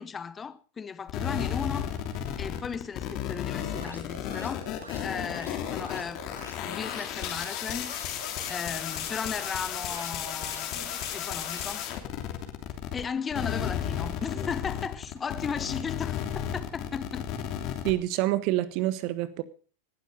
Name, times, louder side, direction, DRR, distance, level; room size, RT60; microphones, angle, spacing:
voice 1, 0.0-1.9 2.4-4.7 5.0-6.3 6.6-7.9 8.5-11.9 12.9-17.3, left 6 dB, 20° left, 1.0 m, -36 dB
sound 1, 1.1-13.0 13.3-17.9, left 10 dB, 40° left, 3.0 m, -33 dB
sound 2, 3.5-11.7, right 2 dB, 80° right, 3.1 m, -47 dB
voice 2, 17.8-19.4, right 15 dB, 45° right, 1.4 m, -27 dB
18.5 x 12.5 x 5.3 m
figure-of-eight pair, 90°, 0 cm